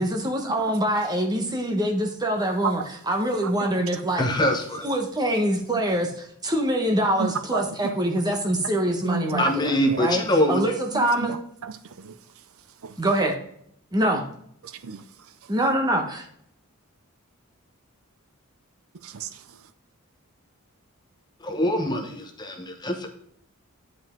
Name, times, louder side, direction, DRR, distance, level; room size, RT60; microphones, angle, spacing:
voice 1, 0.0-4.3 4.8-11.3 13.0-13.4 13.9-14.2 15.5-16.3, right 1 dB, 15° right, 1.1 m, -24 dB
voice 2, 3.4-4.0 7.2-8.0 9.0-10.1 10.9-12.2 12.8-13.0 14.6-15.0 15.4-15.5 19.0-19.6, right 5 dB, 70° right, 0.5 m, -33 dB
voice 3, 4.2-4.9 9.4-10.7 21.4-23.1, left 1 dB, 20° left, 1.0 m, -24 dB
9.3 x 5.2 x 3.8 m
head